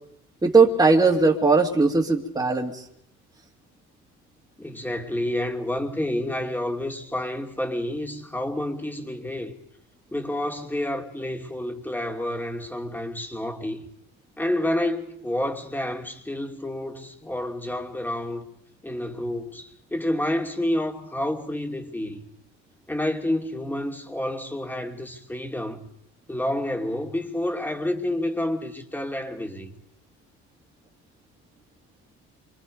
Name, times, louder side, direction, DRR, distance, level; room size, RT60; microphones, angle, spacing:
voice 1, 0.4-2.8, right 4 dB, 15° right, 2.5 m, -19 dB
voice 2, 4.6-9.6 10.1-13.8 14.4-18.4 18.8-22.3 22.9-25.9 26.3-29.7, left 1 dB, 5° left, 2.6 m, -29 dB
27.0 x 25.5 x 5.3 m
cardioid pair, 115°, 30 cm